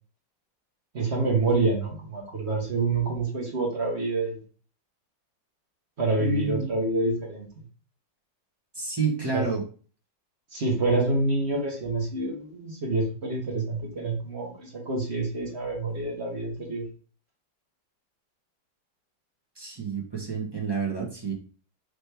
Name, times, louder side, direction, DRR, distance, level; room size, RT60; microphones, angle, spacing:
voice 1, 0.9-4.4 6.0-7.5 9.3-9.4 10.5-16.8, right 3 dB, 40° right, -2 dB, 1.3 m, -27 dB
voice 2, 6.2-6.7 8.7-9.6 19.6-21.3, right 4 dB, 20° right, -2 dB, 0.7 m, -29 dB
5.1 x 3.0 x 3.3 m, 0.40 s
omnidirectional pair, 2.0 m